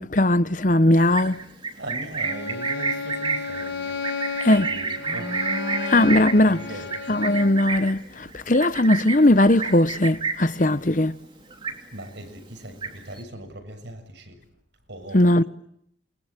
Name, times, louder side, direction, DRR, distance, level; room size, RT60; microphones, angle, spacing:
voice 1, 0.0-1.4 4.4-4.7 5.9-6.6 7.1-11.1 15.1-15.4, left 1 dB, 45° left, 1.0 m, -19 dB
Livestock farm animals working animals, 1.0-10.6 10.9-11.2 11.5-12.2 12.5-13.2, right 4 dB, 25° right, 2.9 m, -30 dB
voice 2, 1.7-4.0 4.7-5.4 6.5-7.0 11.9-14.4 14.9-15.5, right 1 dB, 75° right, 7.2 m, -39 dB
Bowed string instrument, 2.2-7.6, left 4 dB, 90° left, 6.5 m, -33 dB
28.5 x 23.0 x 9.1 m
head